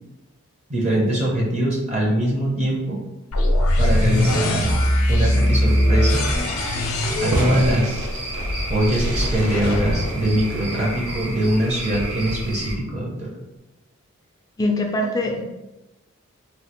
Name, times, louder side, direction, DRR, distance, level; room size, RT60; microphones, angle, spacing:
voice 1, 0.7-3.0 3.8-4.8 5.1-6.3 7.2-8.1 8.7-13.3, right 1 dB, 30° right, -3 dB, 0.6 m, -22 dB
sound 1, 3.3-11.2, left 1 dB, 80° left, 0.5 m, -21 dB
Cricket / Frog, 3.8-12.7, equal, 50° right, 1.1 m, -31 dB
Fireworks, 6.3-11.6, right 1 dB, 85° right, 0.5 m, -32 dB
voice 2, 14.6-15.4, left 1 dB, 15° left, 1 dB, 0.3 m, -22 dB
3.1 x 2.4 x 2.9 m, 1.0 s
head